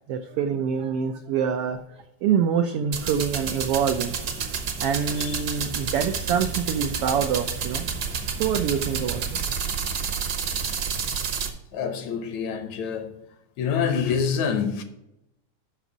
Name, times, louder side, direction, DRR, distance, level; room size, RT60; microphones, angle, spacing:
voice 1, 0.1-1.8 2.2-4.2 4.8-7.8 8.4-9.2, right 7 dB, 85° right, 1.3 m, -25 dB
sound 1, 2.9-11.5, right 6 dB, 60° right, 1.2 m, -29 dB
voice 2, 4.9-5.4 11.7-13.2 13.6-14.8, left 6 dB, 75° left, 2.1 m, -27 dB
6.7 x 6.0 x 7.2 m
omnidirectional pair, 3.3 m